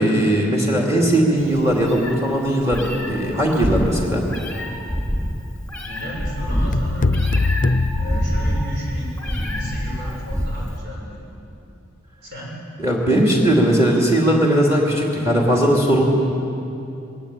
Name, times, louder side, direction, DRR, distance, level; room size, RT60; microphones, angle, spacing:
voice 1, 0.0-4.2 12.8-16.0, right 1 dB, 15° right, -1 dB, 2.6 m, -18 dB
Meow, 1.4-10.8, equal, 5° left, 2.6 m, -26 dB
voice 2, 5.8-7.2 8.0-11.3 12.2-12.6, equal, 55° right, -3 dB, 6.8 m, -33 dB
sound 1, 6.7-9.0, left 3 dB, 40° left, 0.6 m, -21 dB
20.5 x 18.0 x 8.9 m, 2.8 s
head